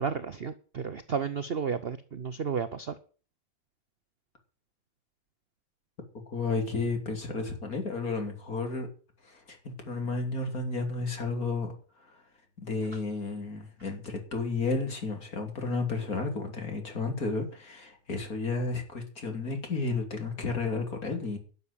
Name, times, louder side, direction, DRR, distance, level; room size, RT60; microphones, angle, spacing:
voice 1, 0.0-3.0, right 6 dB, 55° right, 13 dB, 0.7 m, -32 dB
voice 2, 6.3-8.9 9.2-12.2 12.6-21.4, left 3 dB, 50° left, 5 dB, 3.5 m, -32 dB
12.0 x 7.2 x 9.9 m, 0.40 s
omnidirectional pair, 1.9 m